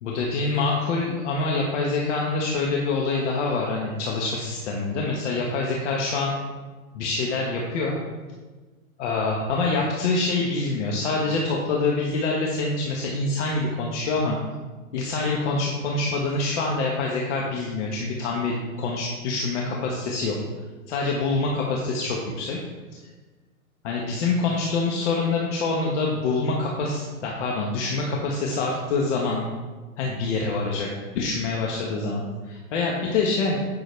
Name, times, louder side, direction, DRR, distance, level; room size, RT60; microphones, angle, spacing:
voice 1, 0.0-6.3 6.9-8.0 9.0-14.4 14.9-20.4 20.9-22.6 23.8-29.5 30.0-30.9 31.1-33.6, left 3 dB, 55° left, -2 dB, 1.4 m, -25 dB
9.4 x 6.3 x 3.3 m, 1.3 s
hypercardioid pair, 135°, 42 cm